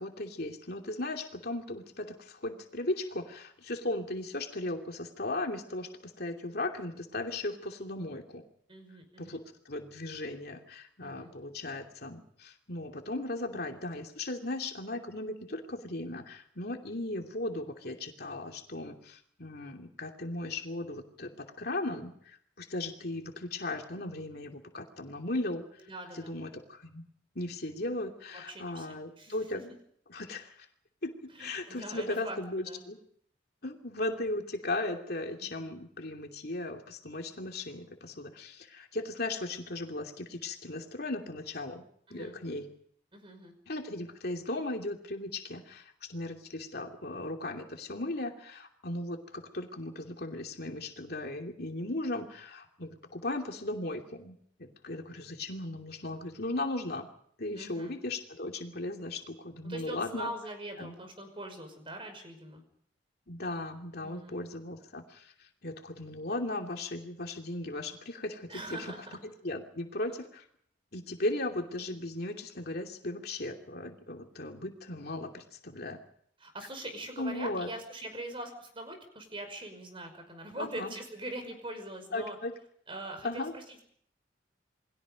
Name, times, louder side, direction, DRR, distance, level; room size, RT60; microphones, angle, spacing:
voice 1, 0.0-8.4 9.2-25.9 26.1-27.0 27.3-29.7 30.1-30.7 31.0-33.0 33.6-41.8 42.1-42.7 43.7-57.1 57.4-60.3 60.8-60.9 63.3-68.9 69.2-70.4 70.9-76.0 77.2-77.7 80.6-80.9 82.1-82.5 83.2-83.5, left 2 dB, 55° left, 2 dB, 2.8 m, -37 dB
voice 2, 8.7-9.4 11.0-11.3 25.9-26.3 28.3-29.5 31.3-32.4 32.7-32.8 35.4-35.8 42.1-42.4 43.1-43.5 57.5-58.0 59.6-62.6 64.0-64.4 68.5-69.2 76.4-82.4 82.9-84.0, right 1 dB, 30° right, 6 dB, 5.5 m, -42 dB
29.0 x 21.5 x 5.3 m, 0.65 s
head